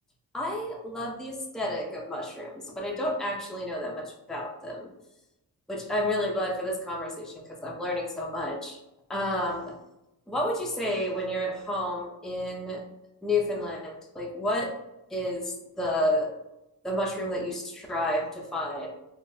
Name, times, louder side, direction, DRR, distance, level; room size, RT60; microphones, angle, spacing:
voice 1, 0.3-4.9 5.7-8.8 9.1-9.8 10.3-12.8 13.2-14.7 15.1-16.3 16.8-18.9, left 1 dB, ahead, -1 dB, 0.6 m, -30 dB
3.9 x 2.2 x 2.2 m, 0.90 s
supercardioid pair, 45°, 45 cm